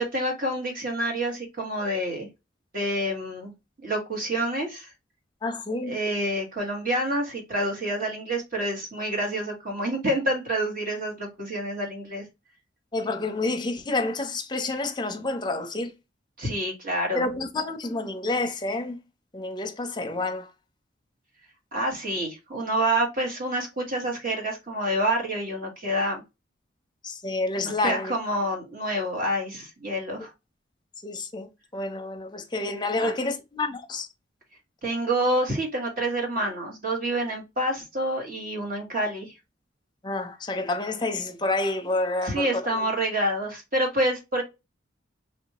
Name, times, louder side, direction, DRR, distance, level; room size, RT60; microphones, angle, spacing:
voice 1, 0.0-2.3 2.7-3.5 3.8-4.9 5.9-12.2 16.4-17.3 21.7-26.2 27.6-30.3 33.0-33.1 34.8-39.3 42.2-44.4, right 1 dB, 50° right, 1.6 m, -28 dB
voice 2, 5.4-6.0 12.9-15.9 17.1-19.0 19.3-20.5 27.0-28.1 31.0-34.1 40.0-42.8, left 2 dB, 25° left, 0.6 m, -29 dB
3.4 x 2.7 x 2.9 m
head